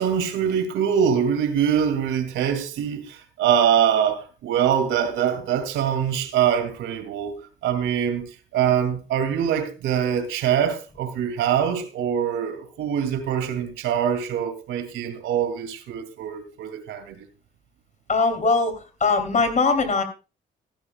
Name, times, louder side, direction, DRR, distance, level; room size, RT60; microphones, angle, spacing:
voice 1, 0.0-7.4 7.6-8.3 8.5-17.2, right 8 dB, 90° right, 2.3 m, -23 dB
voice 2, 18.1-20.0, left 4 dB, 40° left, 3.0 m, -21 dB
15.0 x 14.0 x 2.3 m
cardioid pair, 90°, 20 cm